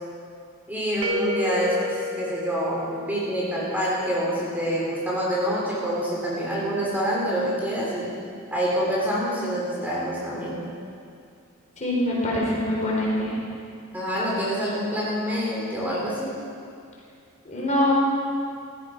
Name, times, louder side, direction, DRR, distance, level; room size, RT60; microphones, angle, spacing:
voice 1, 0.7-8.1 8.5-10.6 13.9-16.3, equal, 10° right, -6 dB, 3.2 m, -26 dB
sound 1, 1.0-3.9, left 3 dB, 60° right, 1.2 m, -31 dB
voice 2, 11.8-13.4 17.4-17.9, left 1 dB, 35° left, -4 dB, 4.2 m, -24 dB
17.0 x 14.0 x 5.4 m, 2.4 s
head